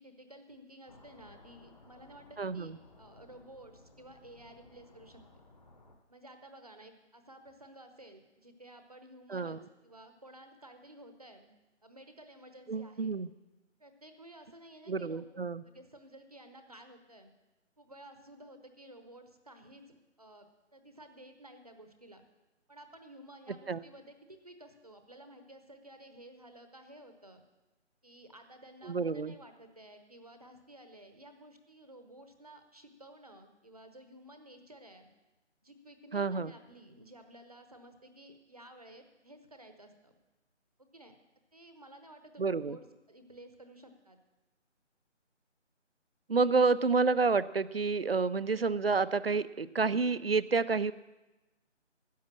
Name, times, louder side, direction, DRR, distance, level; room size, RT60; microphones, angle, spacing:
voice 1, 0.0-5.2 6.1-11.5 11.8-13.1 13.8-15.2 15.6-17.3 17.8-22.2 22.7-27.4 28.0-35.1 35.6-40.1 40.8-41.1 41.5-44.2, right 1 dB, 30° right, 7 dB, 1.0 m, -54 dB
sound 1, 0.9-6.0, left 2 dB, 35° left, 1.3 m, -59 dB
voice 2, 2.4-2.7 9.3-9.6 12.7-13.3 14.9-15.6 23.7-23.8 28.8-29.3 36.1-36.5 42.4-42.8 46.3-50.9, right 4 dB, 55° right, 17 dB, 0.5 m, -29 dB
13.0 x 9.3 x 7.4 m, 1.1 s
figure-of-eight pair, 175°, 36 cm